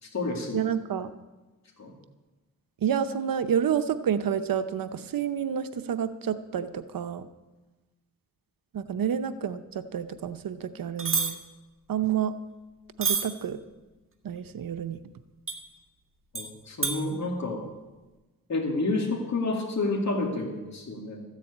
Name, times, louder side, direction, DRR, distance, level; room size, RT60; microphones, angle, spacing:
voice 1, 0.0-0.6 1.8-1.9 16.3-17.7 18.5-21.2, left 2 dB, 55° left, -1 dB, 2.5 m, -29 dB
voice 2, 0.5-1.1 2.8-7.3 8.7-11.4 11.9-12.3 13.0-13.6 14.2-15.0, right 8 dB, 75° right, 11 dB, 0.7 m, -29 dB
sound 1, 11.0-11.3 13.0-13.3 15.5-15.6 16.4-16.5 16.8-17.0, right 5 dB, 35° right, 1.6 m, -26 dB
14.0 x 7.5 x 8.5 m, 1.2 s
cardioid pair, 65°, 34 cm